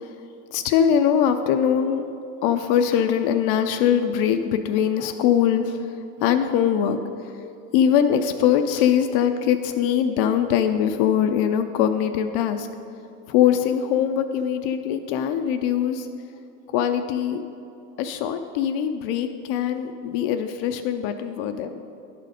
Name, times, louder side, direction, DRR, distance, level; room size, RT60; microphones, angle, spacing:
voice 1, 0.5-2.0 2.4-5.8 6.2-7.0 7.7-12.7 13.3-16.1 16.7-17.4 18.0-21.7, left 9 dB, 50° left, 8 dB, 0.4 m, -22 dB
11.0 x 4.2 x 4.9 m, 2.6 s
supercardioid pair, 130°, 37 cm